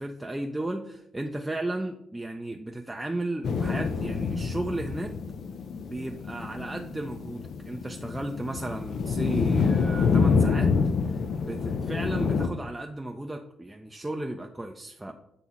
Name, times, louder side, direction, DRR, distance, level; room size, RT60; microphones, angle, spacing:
voice 1, 0.0-5.1 5.8-10.7 11.1-15.1, right 1 dB, 10° right, 3 dB, 0.4 m, -34 dB
sound 1, 3.4-12.5, left 5 dB, 60° left, 0.5 m, -27 dB
8.3 x 3.0 x 4.0 m, 0.79 s
cardioid pair, 90°, 0 cm